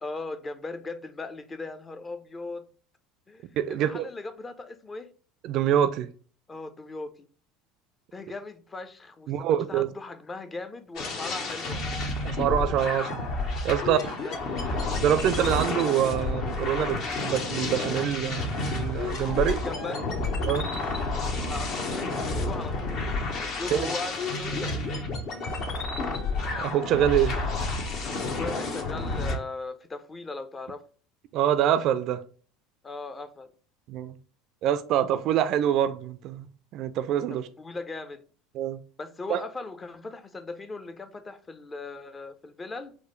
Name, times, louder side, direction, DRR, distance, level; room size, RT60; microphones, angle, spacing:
voice 1, 0.0-2.7 3.3-5.1 6.5-7.3 8.1-11.8 13.7-14.4 19.5-20.1 21.5-25.2 28.3-30.8 32.8-33.5 37.3-38.2 39.0-43.0, left 3 dB, 25° left, 0.5 m, -38 dB
voice 2, 3.6-4.1 5.4-6.1 9.3-9.9 12.2-13.3 13.6-14.0 15.0-19.6 20.5-20.7 23.7-23.9 26.6-27.4 31.3-32.2 33.9-34.1 34.6-36.5 36.7-37.5 38.5-38.8 39.3-39.4, right 10 dB, 50° right, 0.3 m, -25 dB
sound 1, 11.0-29.4, left 3 dB, 55° left, 0.8 m, -30 dB
4.7 x 2.1 x 3.1 m
figure-of-eight pair, 70°, 0 cm